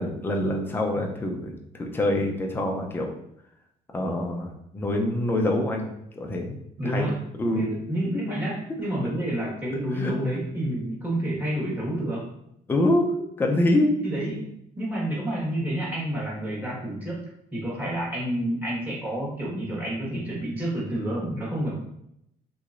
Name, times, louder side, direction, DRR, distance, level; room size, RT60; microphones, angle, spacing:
voice 1, 0.0-3.1 3.9-6.6 6.8-7.1 7.4-7.7 8.1-8.2 9.9-10.1 12.7-13.9 14.3-14.4, left 1 dB, 15° left, 1 dB, 0.5 m, -25 dB
voice 2, 6.8-7.2 7.5-12.3 14.0-14.5 14.8-17.2 17.5-21.8, right 1 dB, 10° right, -6 dB, 1.3 m, -29 dB
3.1 x 2.9 x 2.5 m, 0.76 s
cardioid pair, 115°, 16 cm